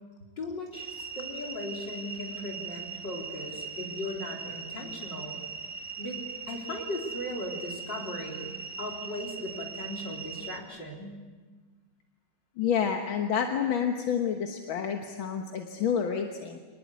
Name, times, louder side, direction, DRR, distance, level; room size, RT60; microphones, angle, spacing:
voice 1, 0.4-5.4 6.0-6.2 6.5-11.2, left 1 dB, 65° left, 0 dB, 4.6 m, -38 dB
sound 1, 0.7-10.6, right 5 dB, 5° right, 1.7 m, -40 dB
voice 2, 12.6-16.6, left 7 dB, 85° left, 3 dB, 2.1 m, -29 dB
25.5 x 20.0 x 8.4 m, 1.4 s
omnidirectional pair, 2.1 m